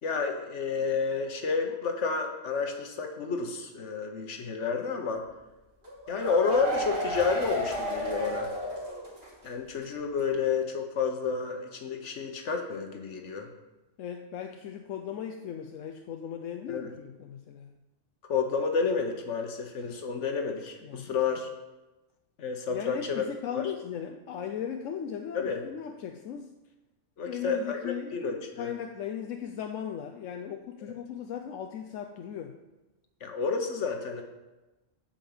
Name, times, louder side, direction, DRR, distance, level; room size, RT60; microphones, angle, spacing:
voice 1, 0.0-5.2 6.1-8.5 9.4-13.5 16.7-16.9 18.3-21.5 22.4-23.2 23.5-23.7 25.3-25.6 27.2-28.7 33.2-34.2, left 5 dB, 70° left, 4 dB, 1.4 m, -30 dB
sound 1, 5.8-9.5 9.8-9.9 10.2-10.3, equal, 45° right, 2.7 m, -33 dB
voice 2, 14.0-17.7 20.8-21.2 22.7-26.5 27.3-32.5, left 8 dB, 85° left, 4 dB, 1.0 m, -37 dB
8.9 x 5.3 x 7.8 m, 1.1 s
omnidirectional pair, 1.3 m